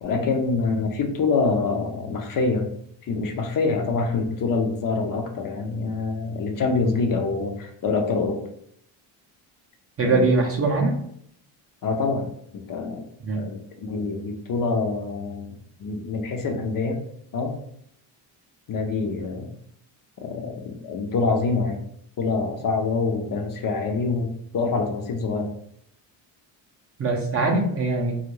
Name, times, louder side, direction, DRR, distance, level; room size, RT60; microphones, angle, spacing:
voice 1, 0.0-2.7 3.1-8.4 10.0-10.3 11.8-13.0 13.3-17.0 17.3-17.6 18.7-19.5 20.2-21.8 22.2-25.5, left 4 dB, 45° left, 4 dB, 0.5 m, -26 dB
voice 2, 10.0-11.0 13.2-13.4 27.0-28.2, right 3 dB, 30° right, 1 dB, 0.4 m, -22 dB
2.3 x 2.1 x 3.0 m, 0.69 s
cardioid pair, 100°, 48 cm